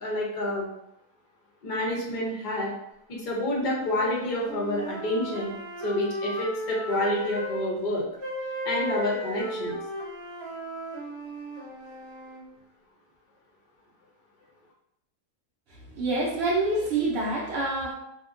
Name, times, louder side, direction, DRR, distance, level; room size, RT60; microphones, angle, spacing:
voice 1, 0.0-0.7 1.6-2.7 3.1-5.5 5.8-8.1 8.6-9.8, left 1 dB, 65° left, -3 dB, 0.4 m, -28 dB
sound 1, 3.6-7.7 8.2-12.4, equal, 30° right, 0.7 m, -35 dB
voice 2, 15.9-17.9, right 2 dB, 85° right, -4 dB, 0.5 m, -26 dB
2.7 x 2.1 x 2.4 m, 0.81 s
omnidirectional pair, 1.7 m